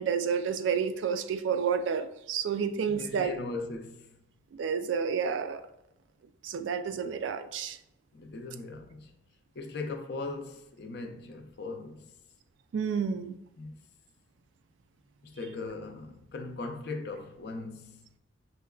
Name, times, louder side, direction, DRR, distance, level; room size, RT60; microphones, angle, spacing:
voice 1, 0.0-3.3 4.6-5.6 6.4-7.8 12.7-13.4, right 6 dB, 70° right, 0.3 m, -30 dB
voice 2, 2.9-4.2 8.1-9.1 9.6-12.1 13.6-13.8 15.2-18.0, left 3 dB, 55° left, 0.4 m, -39 dB
5.5 x 2.2 x 2.3 m
head